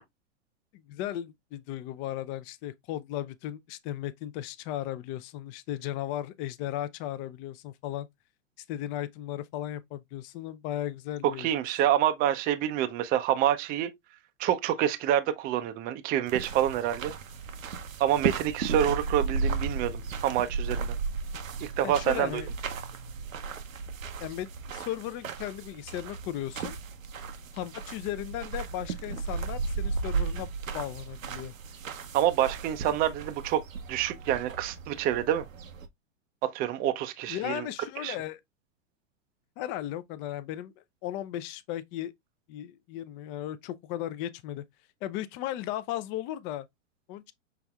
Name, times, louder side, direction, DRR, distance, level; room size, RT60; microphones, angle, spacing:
voice 1, 0.7-8.1 8.7-11.5 21.8-22.5 24.2-26.8 27.5-31.5 37.3-38.4 39.6-40.7 41.0-42.1 42.5-44.6 45.0-46.7 47.1-47.3, left 12 dB, 30° left, 0.4 m, -36 dB
voice 2, 11.4-13.9 14.4-17.1 18.0-20.9 21.6-22.4 32.1-33.6 33.9-35.4 36.5-37.6 38.0-38.2, right 11 dB, 25° right, 0.5 m, -27 dB
sound 1, 16.3-35.9, right 5 dB, 85° right, 0.8 m, -35 dB
5.9 x 3.4 x 2.3 m
hypercardioid pair, 105°, 39 cm